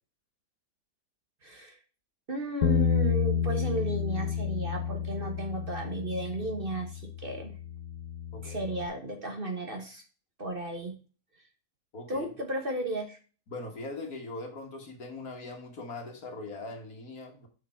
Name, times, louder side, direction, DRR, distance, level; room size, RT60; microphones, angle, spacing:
voice 1, 1.4-1.8 2.3-7.5 8.4-10.0 10.4-11.0 12.1-13.2, right 2 dB, 35° right, 4 dB, 1.4 m, -34 dB
Bass guitar, 2.6-8.9, left 7 dB, 85° left, 1.4 m, -30 dB
voice 2, 11.9-12.4 13.5-17.5, left 2 dB, 65° left, 3 dB, 2.2 m, -41 dB
6.8 x 6.3 x 4.5 m, 0.37 s
omnidirectional pair, 1.7 m